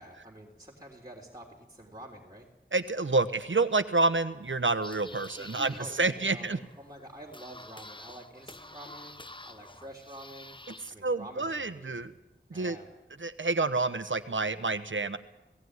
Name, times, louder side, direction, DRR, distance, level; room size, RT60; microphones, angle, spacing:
voice 1, 0.0-2.5 5.4-12.2 12.5-12.9, right 1 dB, 20° right, -3 dB, 3.4 m, -48 dB
voice 2, 2.7-6.6 11.0-12.1 12.5-12.8 13.2-15.2, right 3 dB, 75° right, 11 dB, 1.1 m, -28 dB
sound 1, 4.4-10.9, left 2 dB, 25° left, 0.8 m, -49 dB
17.5 x 17.5 x 9.6 m, 1.0 s
wide cardioid pair, 45°, 20 cm